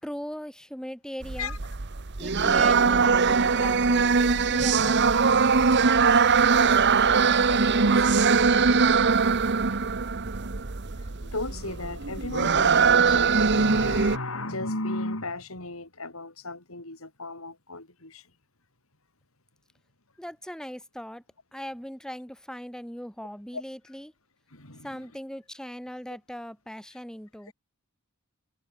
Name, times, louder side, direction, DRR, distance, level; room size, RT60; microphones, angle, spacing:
voice 1, 0.0-1.5 2.2-8.3 20.2-21.2 21.5-24.1 24.8-27.5, equal, 5° left, 5.0 m, -40 dB
sound 1, 1.2-14.2, right 5 dB, 55° right, 1.1 m, -21 dB
voice 2, 7.5-8.3 11.1-18.3 23.5-23.6 24.5-25.0, left 2 dB, 90° left, 7.0 m, -35 dB
open air
head